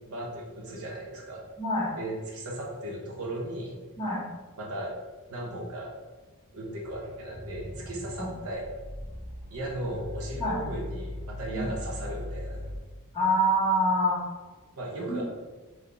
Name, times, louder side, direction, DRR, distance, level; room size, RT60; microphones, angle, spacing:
voice 1, 0.1-1.4 2.0-3.7 4.6-4.9 5.3-5.9 6.5-8.6 9.5-12.6 14.7-15.2, right 1 dB, 70° right, -2 dB, 0.9 m, -36 dB
voice 2, 1.6-1.9 4.0-4.2 8.2-8.3 10.4-10.6 11.5-11.7 13.1-14.2 15.1-15.2, equal, 20° left, -7 dB, 1.3 m, -26 dB
sound 1, 6.8-12.8, left 1 dB, 25° right, 1.4 m, -39 dB
3.8 x 2.7 x 3.3 m, 1.3 s
head